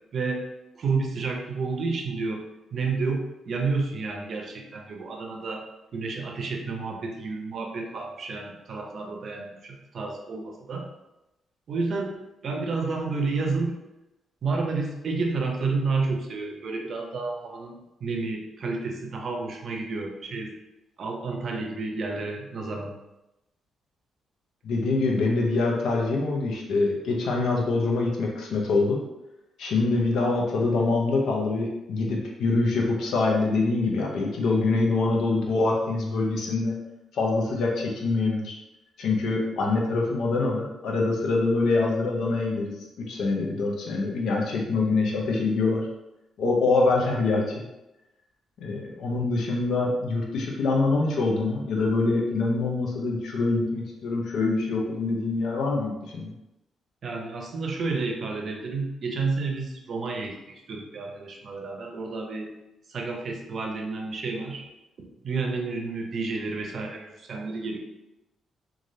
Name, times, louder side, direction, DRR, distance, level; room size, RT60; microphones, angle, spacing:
voice 1, 0.1-0.4 0.7-2.4 2.7-5.6 5.9-10.9 11.7-12.1 12.4-13.8 14.4-20.5 21.0-22.9 57.0-62.5 62.9-64.7 65.0-67.8, right 4 dB, 60° right, 1 dB, 0.6 m, -30 dB
voice 2, 24.6-29.0 29.6-36.7 37.1-38.5 39.0-45.9 46.4-47.6 48.6-56.3, left 3 dB, 80° left, -1 dB, 0.6 m, -25 dB
3.1 x 2.4 x 2.6 m, 0.94 s
cardioid pair, 85°, 0 cm